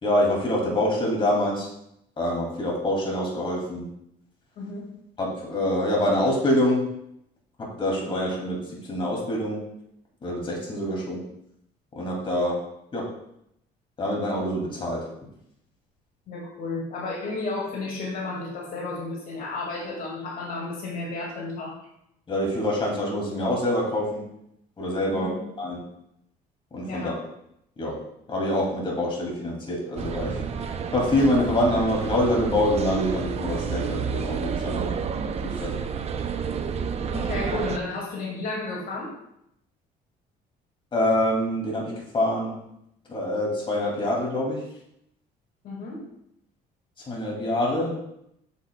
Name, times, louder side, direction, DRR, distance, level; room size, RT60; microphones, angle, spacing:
voice 1, 0.0-1.7 2.2-3.9 5.2-6.9 7.6-9.6 10.2-11.2 11.9-12.6 12.9-13.1 14.0-15.1 22.3-24.2 24.8-25.3 25.6-25.8 26.7-27.1 27.8-28.0 28.3-30.4 30.9-34.9 35.4-35.7 40.9-42.6 43.1-44.7 47.0-48.0, left 1 dB, 30° left, -2 dB, 2.4 m, -25 dB
voice 2, 16.3-21.8 25.1-25.4 26.9-27.2 37.1-39.1 45.6-46.0, left 3 dB, 60° left, -2 dB, 2.0 m, -32 dB
sound 1, 30.0-37.8, right 6 dB, 40° right, 0.5 m, -30 dB
8.1 x 7.2 x 2.2 m, 0.77 s
cardioid pair, 110°, 17 cm